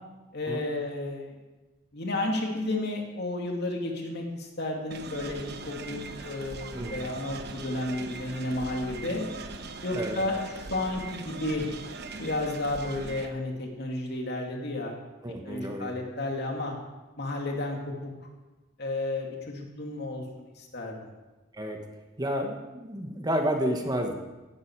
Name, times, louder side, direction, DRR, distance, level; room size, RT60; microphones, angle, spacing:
voice 1, 0.3-1.3 1.9-9.2 9.8-11.6 12.2-14.9 15.4-16.7 17.2-18.1 18.8-21.0, left 2 dB, 60° left, 1 dB, 2.6 m, -32 dB
sound 1, 4.9-13.3, right 3 dB, 60° right, 1.0 m, -40 dB
voice 2, 15.2-15.9 21.5-21.8 22.2-24.1, equal, 20° right, 3 dB, 1.3 m, -30 dB
16.0 x 11.5 x 4.7 m, 1.1 s
head